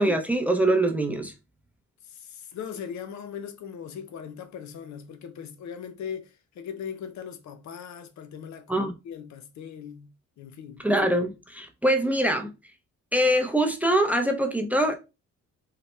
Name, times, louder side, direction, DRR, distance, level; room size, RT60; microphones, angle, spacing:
voice 1, 0.0-1.3 8.7-8.9 10.8-12.5 13.1-14.9, right 1 dB, 5° right, 0.5 m, -23 dB
voice 2, 2.0-10.8, left 7 dB, 65° left, 0.7 m, -39 dB
4.0 x 2.1 x 3.1 m
cardioid pair, 90°, 30 cm